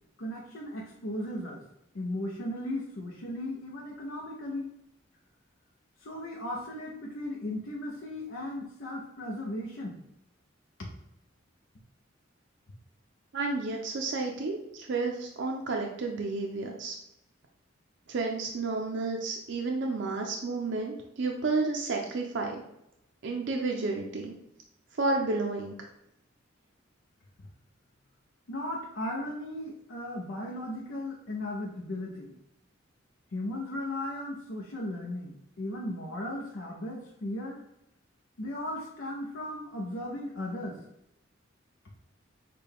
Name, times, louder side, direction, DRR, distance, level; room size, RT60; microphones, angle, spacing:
voice 1, 0.2-1.6 1.9-4.7 6.0-10.0 28.5-32.4 33.3-37.6 38.4-40.8, left 1 dB, 85° left, -2 dB, 0.7 m, -36 dB
voice 2, 13.3-16.9 18.1-22.6 23.2-24.3 25.0-25.7, right 3 dB, 65° right, 1 dB, 0.5 m, -31 dB
6.7 x 2.3 x 3.4 m, 0.83 s
head